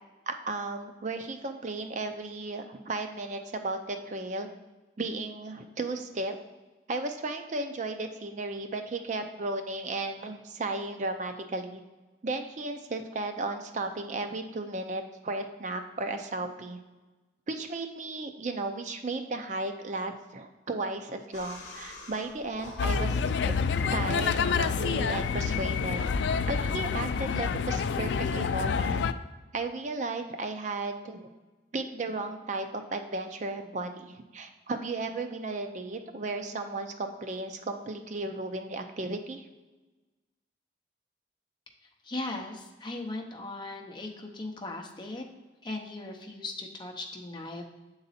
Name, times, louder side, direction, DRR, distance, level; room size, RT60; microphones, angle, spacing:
voice 1, 0.3-4.5 5.0-6.4 6.9-11.8 12.2-16.8 17.5-23.6 23.9-26.0 26.5-29.0 29.5-31.3 31.7-39.4, right 2 dB, 40° right, 6 dB, 0.4 m, -34 dB
sound 1, 21.3-26.4, left 2 dB, 45° left, 1.0 m, -48 dB
sound 2, 22.8-29.1, left 5 dB, 70° left, 0.3 m, -28 dB
voice 2, 42.0-45.3 45.6-47.6, left 2 dB, 25° left, 2 dB, 0.7 m, -38 dB
7.8 x 4.0 x 4.1 m, 1.2 s
head